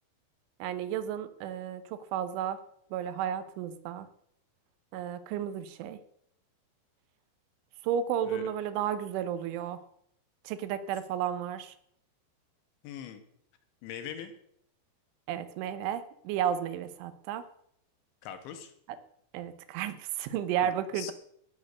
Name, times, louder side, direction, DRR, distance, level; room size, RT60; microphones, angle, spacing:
voice 1, 0.6-2.6 2.9-4.1 4.9-6.0 7.8-9.8 10.4-11.7 15.3-17.4 19.3-21.1, right 9 dB, 85° right, 13 dB, 3.4 m, -33 dB
voice 2, 12.8-13.2 13.8-14.3 18.2-18.7 20.6-21.1, left 9 dB, 75° left, 8 dB, 3.6 m, -41 dB
17.5 x 6.7 x 6.6 m, 0.71 s
omnidirectional pair, 5.4 m